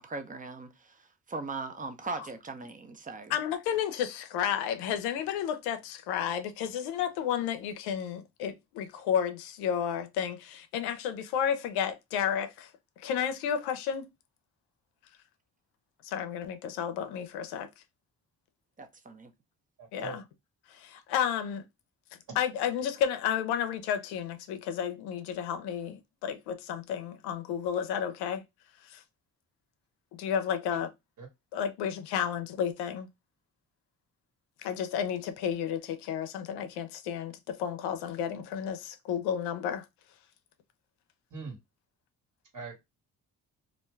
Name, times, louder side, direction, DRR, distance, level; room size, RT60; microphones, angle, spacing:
voice 1, 0.0-3.3 18.8-19.3, right 3 dB, 20° right, 0.6 m, -39 dB
voice 2, 3.3-12.7 13.0-14.1 16.0-17.7 19.9-20.2 20.7-21.6 22.4-28.4 28.8-29.0 30.1-30.9 31.5-33.1 34.6-39.8, left 8 dB, 90° left, 0.6 m, -32 dB
voice 3, 19.8-20.2 30.7-30.8 31.2-31.3 41.3-41.6 42.5-42.8, right 5 dB, 50° right, 1.4 m, -41 dB
2.5 x 2.2 x 3.1 m
supercardioid pair, 60°, 38 cm